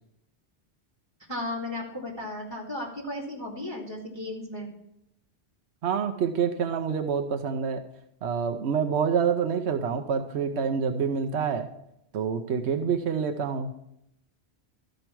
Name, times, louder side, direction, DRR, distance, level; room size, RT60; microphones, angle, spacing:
voice 1, 1.3-4.7, left 1 dB, 25° right, -1 dB, 2.3 m, -35 dB
voice 2, 5.8-7.8 8.2-11.7 12.1-13.7, right 6 dB, 85° right, 7 dB, 1.0 m, -27 dB
13.5 x 5.3 x 4.5 m, 0.78 s
omnidirectional pair, 1.1 m